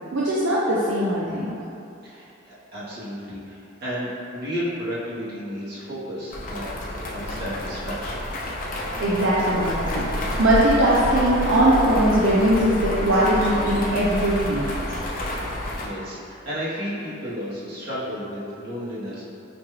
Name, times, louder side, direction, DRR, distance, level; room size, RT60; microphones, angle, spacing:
voice 1, 0.1-1.5 9.0-14.7, right 1 dB, 70° right, -8 dB, 0.5 m, -20 dB
voice 2, 2.0-6.7 7.0-8.3 15.4-19.2, equal, 50° right, -9 dB, 1.1 m, -33 dB
sound 1, 6.3-15.9, left 1 dB, 45° left, 0.5 m, -29 dB
5.0 x 2.3 x 3.1 m, 2.7 s
head